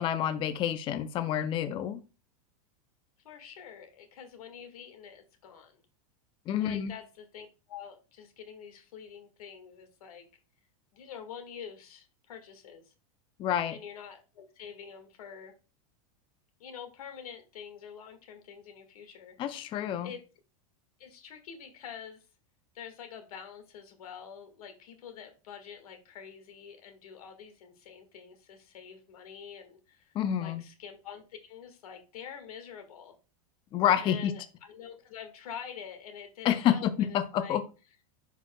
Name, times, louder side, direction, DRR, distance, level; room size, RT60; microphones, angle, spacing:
voice 1, 0.0-2.0 6.5-6.9 13.4-13.8 19.4-20.1 30.1-30.6 33.7-34.3 36.4-37.6, left 10 dB, 30° left, 0.4 m, -28 dB
voice 2, 3.2-5.8 6.6-10.3 10.9-12.9 13.7-15.5 16.6-19.7 20.0-20.2 21.0-22.3 22.7-33.2 34.0-37.6, left 8 dB, 85° left, 1.7 m, -46 dB
10.5 x 4.6 x 2.2 m
supercardioid pair, 135°, 18 cm